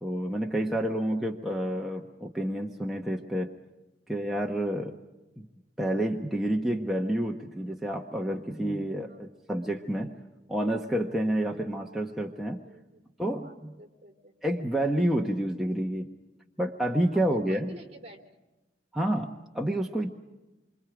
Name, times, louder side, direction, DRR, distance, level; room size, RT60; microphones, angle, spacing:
voice 1, 0.0-3.5 4.1-5.0 5.4-5.5 5.8-10.1 10.5-12.6 13.2-13.7 14.4-16.1 16.6-17.7 18.9-20.1, right 1 dB, ahead, 0 dB, 1.1 m, -29 dB
voice 2, 12.6-13.0 13.4-14.3 17.1-18.2, right 1 dB, 40° right, 4 dB, 3.3 m, -49 dB
27.5 x 24.5 x 5.0 m, 1.1 s
head